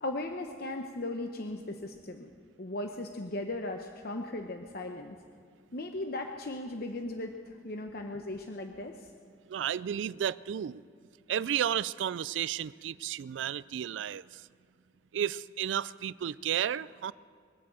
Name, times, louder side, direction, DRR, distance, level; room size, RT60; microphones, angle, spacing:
voice 1, 0.0-2.3 2.6-5.2 5.7-9.1, left 2 dB, 55° left, 4 dB, 0.9 m, -37 dB
voice 2, 9.5-10.8 11.3-14.2 15.1-17.1, right 9 dB, 85° right, 19 dB, 0.3 m, -32 dB
22.5 x 8.4 x 7.6 m, 2.3 s
head